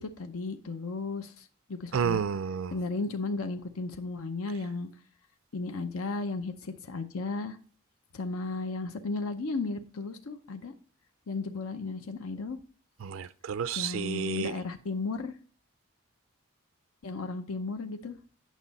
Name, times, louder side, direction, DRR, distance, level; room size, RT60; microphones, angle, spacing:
voice 1, 0.0-2.2 2.7-4.9 5.5-7.6 8.1-10.7 11.3-12.6 13.8-15.3 17.0-18.1, left 3 dB, 90° left, 0.7 m, -34 dB
voice 2, 1.9-2.7 13.0-14.5, right 7 dB, 70° right, 0.4 m, -30 dB
9.1 x 6.1 x 4.1 m
head